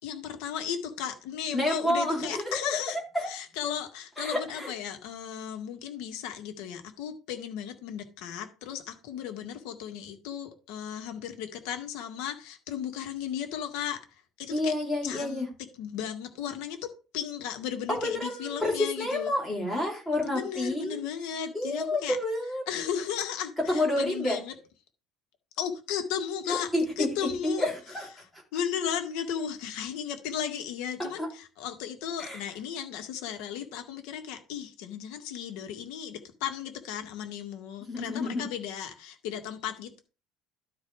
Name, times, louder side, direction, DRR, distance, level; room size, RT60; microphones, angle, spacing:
voice 1, 0.0-14.7 15.0-15.5 15.7-19.3 20.3-22.2 22.7-24.5 25.6-26.7 27.0-27.7 28.5-40.0, left 8 dB, 75° left, 2.0 m, -35 dB
voice 2, 1.5-2.8 3.1-3.3 4.2-4.7 14.5-15.5 17.9-21.0 21.5-22.6 23.7-24.4 26.5-28.1 28.3-28.4 31.2-31.3 32.2-32.4 37.9-38.4, left 1 dB, 5° left, 3.8 m, -29 dB
12.0 x 4.2 x 4.9 m
cardioid pair, 160°, 0 cm